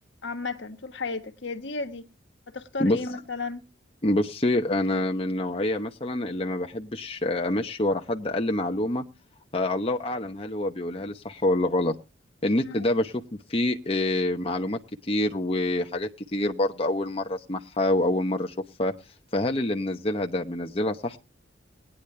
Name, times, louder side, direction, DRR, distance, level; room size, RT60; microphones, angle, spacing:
voice 1, 0.2-2.0 2.5-3.7 12.6-12.8, left 3 dB, 70° left, 1.4 m, -34 dB
voice 2, 4.0-9.0 9.5-11.9 12.4-13.1 13.5-14.8 15.1-18.5 18.8-18.9 19.3-21.2, left 1 dB, 30° left, 1.0 m, -26 dB
19.0 x 10.0 x 3.3 m
head